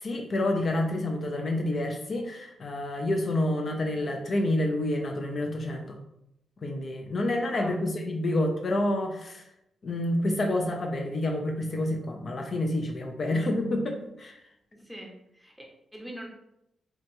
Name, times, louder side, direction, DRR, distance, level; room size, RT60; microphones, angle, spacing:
voice 1, 0.0-6.0 6.6-9.4 9.8-14.4, left 1 dB, 50° left, 3 dB, 0.4 m, -28 dB
voice 2, 7.4-7.7 14.7-16.3, equal, ahead, -1 dB, 0.7 m, -44 dB
2.8 x 2.2 x 2.6 m, 0.81 s
cardioid pair, 80°, 0 cm